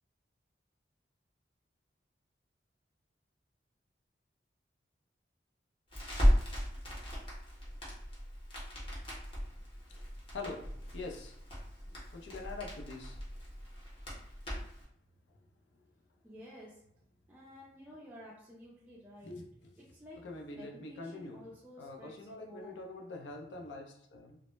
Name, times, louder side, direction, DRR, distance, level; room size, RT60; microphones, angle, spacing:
Crackle, 5.9-14.8, equal, 30° left, 0.7 m, -35 dB
voice 1, 9.6-11.4 11.8-13.2 14.7-14.8 15.3-15.5 19.2-19.7 20.2-21.5 21.8-24.4, left 3 dB, 80° left, 2 dB, 0.5 m, -45 dB
voice 2, 16.2-16.9 17.3-19.4 19.8-20.3 20.5-22.8, equal, 10° right, -6 dB, 0.3 m, -52 dB
2.0 x 2.0 x 3.0 m, 0.68 s
head